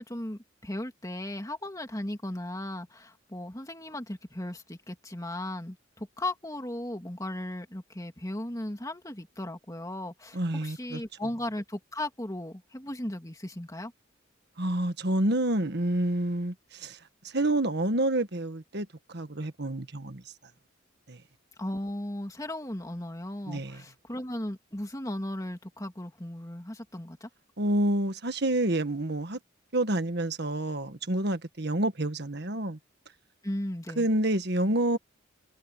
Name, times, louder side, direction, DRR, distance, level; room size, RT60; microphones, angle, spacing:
voice 1, 0.0-13.9 21.6-27.3 33.4-34.1, left 1 dB, 15° left, 2.6 m, -36 dB
voice 2, 10.3-11.0 14.6-17.0 17.2-20.2 21.1-21.2 23.5-23.8 27.6-29.4 29.7-32.8 34.0-35.0, right 1 dB, 55° right, 1.6 m, -28 dB
head